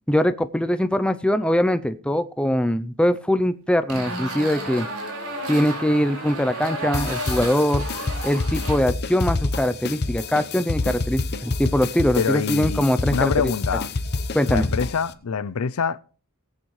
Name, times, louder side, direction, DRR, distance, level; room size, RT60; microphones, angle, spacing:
voice 1, 0.1-4.9 5.5-7.8 8.2-13.5 14.3-14.7, equal, 5° left, 0.5 m, -22 dB
sound 1, 3.9-8.8, right 1 dB, 70° right, 4.6 m, -32 dB
sound 2, 6.9-15.1, left 3 dB, 45° left, 0.8 m, -27 dB
voice 2, 12.2-13.9 14.4-16.0, left 6 dB, 80° left, 0.5 m, -25 dB
18.5 x 8.9 x 3.2 m
head